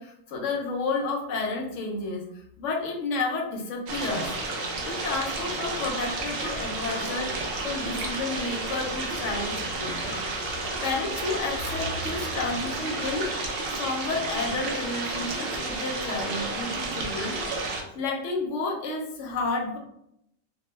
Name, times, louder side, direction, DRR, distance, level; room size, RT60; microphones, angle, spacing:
voice 1, 0.0-2.3 2.6-4.3 4.8-7.3 7.6-10.2 10.8-13.3 13.7-17.4 17.9-19.8, left 3 dB, 70° left, 1 dB, 0.9 m, -31 dB
sound 1, 3.9-17.8, right 2 dB, 60° right, 0.6 m, -31 dB
2.6 x 2.2 x 3.1 m, 0.77 s
omnidirectional pair, 1.4 m